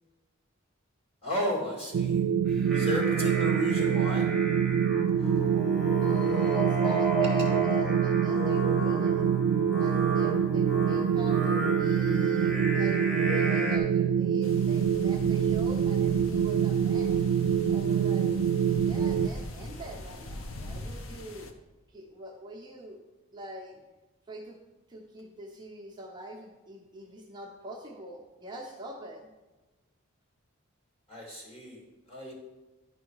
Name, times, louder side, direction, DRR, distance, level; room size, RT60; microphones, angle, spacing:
voice 1, 1.2-2.2 2.7-4.3 5.2-5.3 31.1-31.8 32.1-32.3, left 1 dB, 30° left, -3 dB, 2.2 m, -33 dB
sound 1, 1.9-19.3, right 8 dB, 80° right, 0.3 m, -25 dB
Singing, 2.4-13.8, right 1 dB, ahead, 1.1 m, -33 dB
voice 2, 6.0-9.3 9.8-17.2 17.7-18.4 18.8-21.5 21.9-23.0 23.3-23.7 24.3-24.6 24.9-29.3, right 1 dB, 20° right, -2 dB, 0.8 m, -44 dB
sound 2, 14.4-21.5, left 1 dB, 75° left, 0.8 m, -42 dB
11.0 x 4.6 x 4.7 m, 1.2 s
head